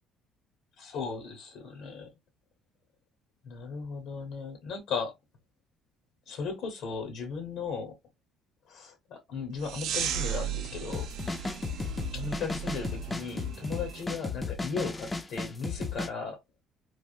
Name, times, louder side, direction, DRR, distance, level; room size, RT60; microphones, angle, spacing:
voice 1, 0.8-2.1 3.4-5.1 6.3-7.9 8.7-11.1 12.1-16.4, left 5 dB, 70° left, 1.0 m, -36 dB
sound 1, 9.6-14.0, right 9 dB, 70° right, 0.5 m, -36 dB
sound 2, 10.9-16.1, left 3 dB, 20° left, 0.5 m, -34 dB
3.3 x 2.1 x 2.6 m
cardioid pair, 130°, 0 cm